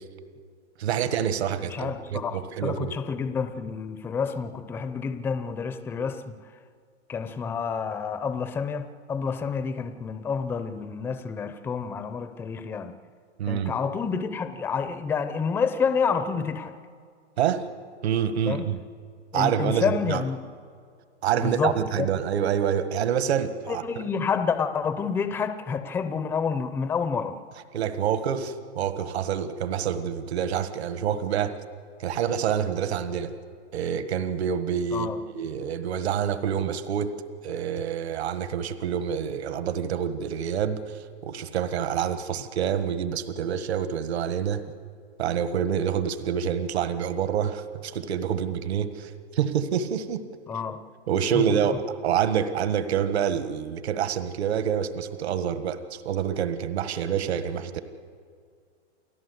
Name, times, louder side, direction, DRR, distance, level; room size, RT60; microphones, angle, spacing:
voice 1, 0.8-3.0 13.4-13.7 17.4-17.7 18.0-18.8 19.3-20.2 21.2-24.0 27.7-31.6 32.0-33.3 33.7-37.1 37.4-44.7 45.2-50.2 51.1-57.8, right 8 dB, 65° right, 11 dB, 1.6 m, -27 dB
voice 2, 1.6-6.4 7.1-12.9 13.5-16.8 18.5-18.7 19.3-20.4 21.4-22.1 23.7-27.4 34.9-35.2 50.5-50.8 51.3-51.4, left 6 dB, 5° left, 10 dB, 0.5 m, -29 dB
29.0 x 17.0 x 8.0 m, 2.2 s
hypercardioid pair, 150°, 34 cm